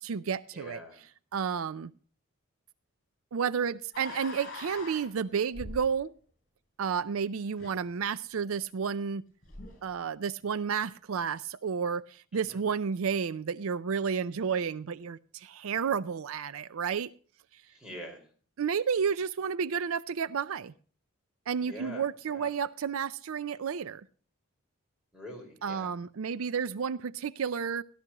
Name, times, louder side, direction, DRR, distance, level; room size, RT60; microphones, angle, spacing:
voice 1, 0.0-0.8 1.3-1.9 3.3-6.1 6.8-9.2 9.8-17.1 18.6-20.7 21.5-24.0 25.6-27.8, right 6 dB, 75° right, 0.4 m, -31 dB
voice 2, 0.5-1.0 12.3-12.6 17.7-18.3 21.6-22.5 25.1-25.9, equal, 5° right, 4.8 m, -45 dB
sound 1, 3.9-5.9 7.6-7.7 9.4-9.8, left 2 dB, 40° left, 6.7 m, -42 dB
17.5 x 12.0 x 2.9 m
head